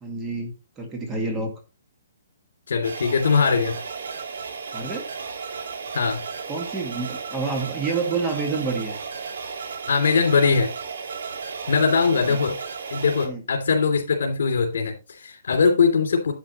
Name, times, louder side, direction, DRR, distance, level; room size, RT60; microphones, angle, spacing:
voice 1, 0.0-1.5 4.7-5.1 6.5-9.0 12.1-12.4 13.2-13.4, right 4 dB, 10° right, 3 dB, 1.8 m, -28 dB
voice 2, 2.7-3.8 5.9-6.2 9.9-10.7 11.7-12.6 12.9-16.3, left 5 dB, 75° left, 2 dB, 2.9 m, -21 dB
sound 1, 2.8-13.3, right 5 dB, 80° right, 3.1 m, -34 dB
10.5 x 8.7 x 3.0 m, 0.30 s
hypercardioid pair, 165°, 0 cm